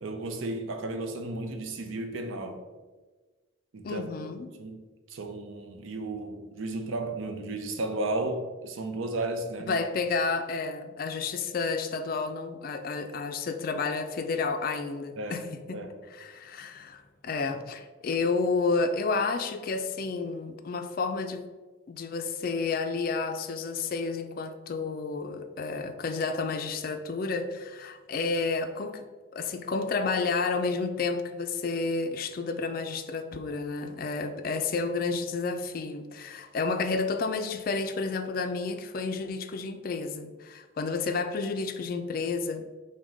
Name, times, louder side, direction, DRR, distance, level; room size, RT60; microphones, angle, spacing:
voice 1, 0.0-2.6 3.7-4.3 4.6-4.8 5.1-9.8 15.2-15.5 15.7-16.0, right 2 dB, 75° right, 5 dB, 0.6 m, -34 dB
voice 2, 3.8-4.5 9.7-15.8 16.1-21.5 21.9-29.1 29.3-42.8, left 4 dB, 45° left, 8 dB, 0.3 m, -31 dB
6.0 x 2.2 x 3.8 m, 1.3 s
head